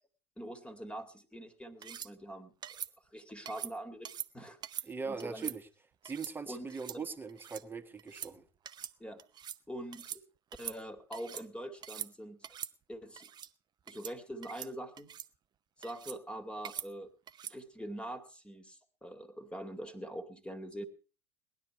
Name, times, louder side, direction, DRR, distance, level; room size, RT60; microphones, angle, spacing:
voice 1, 0.4-2.5 3.1-5.5 6.5-6.7 6.9-7.1 9.0-9.2 9.7-10.2 10.6-12.5 12.9-13.3 13.9-15.1 15.8-17.1 17.4-20.9, right 1 dB, 5° left, 9 dB, 2.1 m, -44 dB
sound 1, 1.8-2.1 2.6-2.9 3.5-3.7 4.0-4.3 4.6-4.9 5.2-5.6 6.0-6.3 6.7-7.0 7.3-7.6 8.0-8.3 8.6-8.9 9.2-9.6 9.9-10.2 10.5-11.4 11.8-12.1 12.4-12.7 13.2-13.5 13.9-14.1 14.4-14.7 15.0-15.3 15.8-16.2 16.6-16.9 17.3-17.6, right 9 dB, 30° right, 0.7 m, -43 dB
voice 2, 4.9-5.6 6.0-8.4, right 5 dB, 15° right, 5 dB, 1.7 m, -40 dB
19.0 x 11.0 x 4.5 m, 0.36 s
figure-of-eight pair, 80°, 14 cm